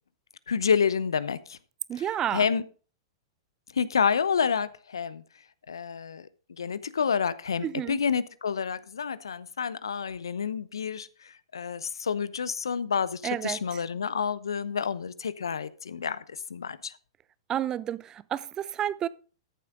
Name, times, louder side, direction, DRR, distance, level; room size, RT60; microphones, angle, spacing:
voice 1, 0.5-1.6 2.3-2.6 3.7-5.2 5.7-6.3 6.6-11.1 11.5-16.2 16.5-16.9, left 6 dB, 80° left, 0.8 m, -28 dB
voice 2, 1.9-2.4 7.6-8.0 13.2-13.8 17.5-19.1, right 10 dB, 25° right, 0.6 m, -31 dB
14.0 x 7.5 x 3.8 m
hypercardioid pair, 110°, 2 cm